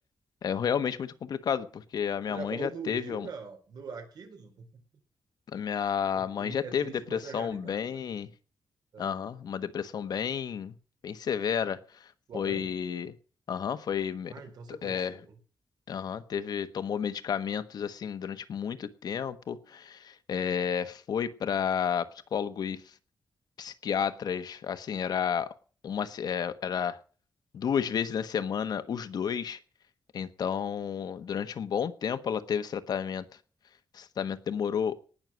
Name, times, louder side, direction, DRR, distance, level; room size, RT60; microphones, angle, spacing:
voice 1, 0.4-3.3 5.5-8.3 9.0-10.7 11.0-11.8 12.3-13.1 13.5-14.3 14.7-15.2 15.9-22.8 23.6-25.5 25.8-27.0 27.5-29.6 30.1-33.2 33.9-34.9, left 7 dB, 70° left, 11 dB, 1.2 m, -31 dB
voice 2, 2.2-4.7 6.1-8.0 8.9-9.1 12.3-12.7 14.3-15.4, right 5 dB, 70° right, 4 dB, 4.5 m, -43 dB
19.0 x 6.6 x 7.5 m, 0.39 s
wide cardioid pair, 145°, 7 cm